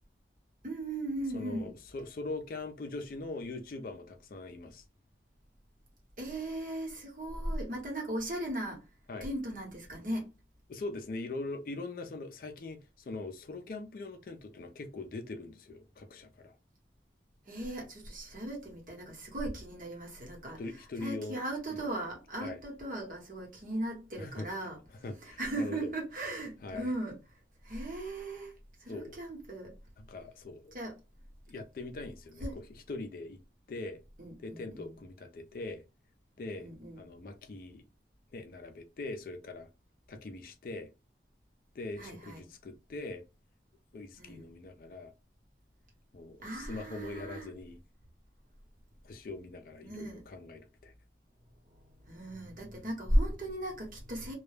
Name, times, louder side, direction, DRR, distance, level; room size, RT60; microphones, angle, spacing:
voice 1, 0.6-1.7 6.2-8.8 9.2-10.3 17.4-20.6 21.0-24.8 25.2-27.2 27.6-29.7 30.7-31.0 32.4-32.6 34.2-34.9 36.6-37.0 42.0-42.4 44.2-44.5 46.4-47.5 49.8-50.2 51.7-54.3, right 1 dB, 50° right, 1.0 m, -37 dB
voice 2, 1.3-4.8 9.1-9.3 10.7-16.5 20.6-21.4 21.7-21.9 22.4-22.6 24.2-24.5 25.0-25.8 26.6-26.9 28.9-29.2 30.0-30.8 31.5-32.5 32.9-33.4 33.7-34.0 34.4-35.8 36.4-36.7 37.0-37.8 38.3-39.7 40.1-40.9 41.7-43.2 43.9-45.1 46.1-47.8 49.0-50.9, left 2 dB, 50° left, 0.4 m, -42 dB
2.2 x 2.0 x 3.1 m
head